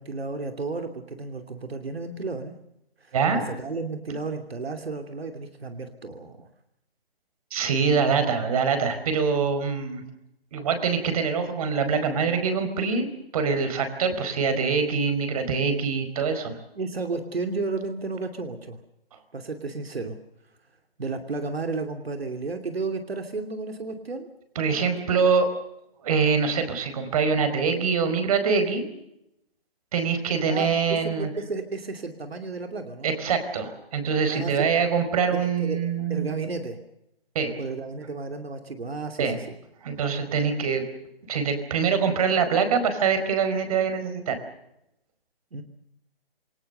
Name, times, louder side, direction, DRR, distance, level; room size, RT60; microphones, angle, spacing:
voice 1, 0.0-2.5 3.0-6.5 16.8-18.8 19.3-20.2 21.0-24.3 25.2-25.3 30.5-33.1 34.3-34.7 35.3-35.8 36.1-36.8 37.6-39.5 45.5-45.6, right 3 dB, 80° right, 6 dB, 2.9 m, -33 dB
voice 2, 7.5-10.0 10.5-13.1 13.3-16.6 24.5-25.5 26.0-28.8 29.9-31.3 33.0-36.3 37.3-37.5 39.2-39.4 39.8-40.8 41.3-44.4, right 5 dB, 40° right, 8 dB, 4.7 m, -24 dB
28.0 x 20.5 x 6.8 m, 0.83 s
hypercardioid pair, 155°, 30 cm